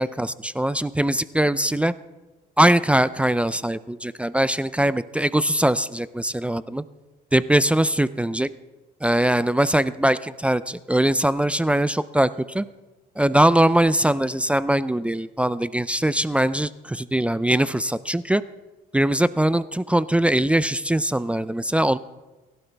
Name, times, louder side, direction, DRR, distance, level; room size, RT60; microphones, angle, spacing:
voice 1, 0.0-1.9 2.6-6.8 7.3-8.5 9.0-12.7 13.2-18.4 18.9-22.0, right 1 dB, 5° right, 16 dB, 0.4 m, -21 dB
29.5 x 12.0 x 3.4 m, 1.2 s
cardioid pair, 110°, 17 cm